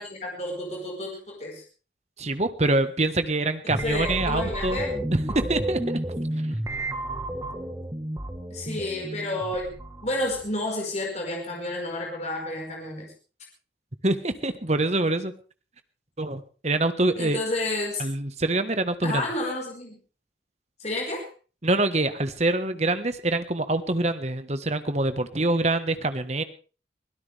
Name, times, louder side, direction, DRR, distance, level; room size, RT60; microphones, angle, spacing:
voice 1, 0.0-1.6 3.7-4.9 8.5-13.1 17.2-18.0 19.0-20.0 20.8-21.3, left 1 dB, 35° left, 0 dB, 5.1 m, -31 dB
voice 2, 2.2-4.8 5.1-6.3 14.0-15.3 16.2-17.4 18.0-19.2 21.6-26.4, right 2 dB, 35° right, 10 dB, 1.4 m, -25 dB
sound 1, 3.7-10.6, right 1 dB, 15° right, 1.4 m, -32 dB
23.5 x 17.0 x 3.5 m, 0.37 s
head